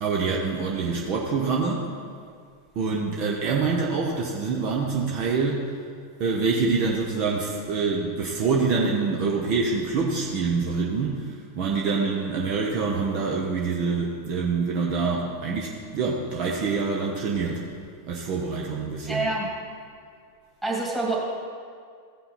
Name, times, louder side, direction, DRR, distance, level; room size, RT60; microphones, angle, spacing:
voice 1, 0.0-1.9 2.7-5.7 6.2-17.7 18.1-19.2, right 4 dB, 40° right, -1 dB, 0.9 m, -26 dB
voice 2, 19.1-19.5 20.6-21.2, right 2 dB, 5° right, -4 dB, 2.5 m, -26 dB
15.5 x 5.5 x 4.3 m, 2.2 s
figure-of-eight pair, 90°, 0 cm